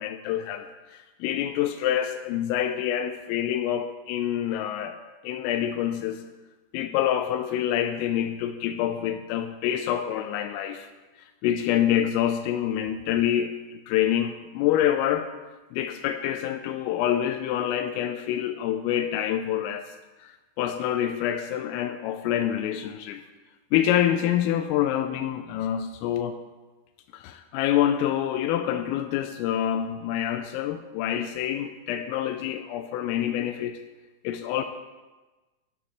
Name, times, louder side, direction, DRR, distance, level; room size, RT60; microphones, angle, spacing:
voice 1, 0.0-5.0 5.2-6.2 6.7-10.9 11.4-15.3 15.7-19.9 20.2-23.2 23.7-26.4 27.1-33.8 34.2-34.6, left 11 dB, 85° left, 8 dB, 3.2 m, -26 dB
13.5 x 12.5 x 3.1 m, 1.2 s
omnidirectional pair, 6.0 m